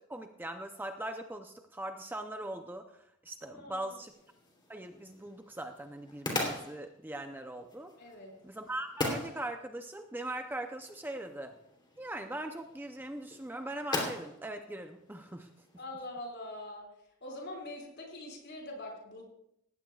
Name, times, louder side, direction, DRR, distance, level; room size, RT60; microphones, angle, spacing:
voice 1, 0.0-4.1 4.7-7.9 8.4-11.6 12.0-15.5, right 1 dB, 10° right, 6 dB, 0.6 m, -40 dB
voice 2, 3.4-4.0 8.0-8.3 15.8-16.9 17.2-19.2, left 1 dB, 50° left, 0 dB, 5.3 m, -43 dB
sound 1, 4.1-15.8, left 2 dB, 20° left, 3.1 m, -41 dB
19.0 x 15.5 x 2.4 m, 0.78 s
head